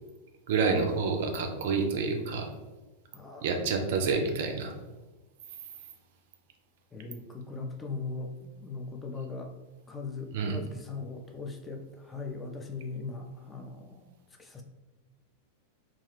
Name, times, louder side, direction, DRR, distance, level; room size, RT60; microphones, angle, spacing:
voice 1, 0.5-2.5 3.4-4.7 10.3-10.6, right 4 dB, 55° right, 4 dB, 0.4 m, -28 dB
voice 2, 3.1-3.6 6.9-9.5 9.9-14.6, left 4 dB, 15° left, 2 dB, 0.4 m, -39 dB
2.4 x 2.3 x 3.2 m, 1.1 s
figure-of-eight pair, 90°, 0 cm